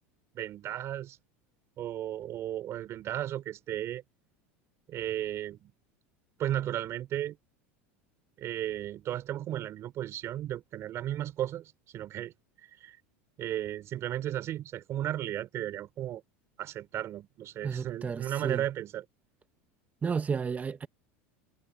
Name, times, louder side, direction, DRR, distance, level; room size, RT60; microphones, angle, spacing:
voice 1, 0.3-1.2 1.8-4.0 4.9-5.7 6.4-7.4 8.4-12.3 12.8-13.0 13.4-16.2 16.6-19.0, right 12 dB, 45° right, 4.6 m, -34 dB
voice 2, 17.6-18.6 20.0-20.9, right 6 dB, 25° right, 1.6 m, -32 dB
supercardioid pair, 105°, 7 cm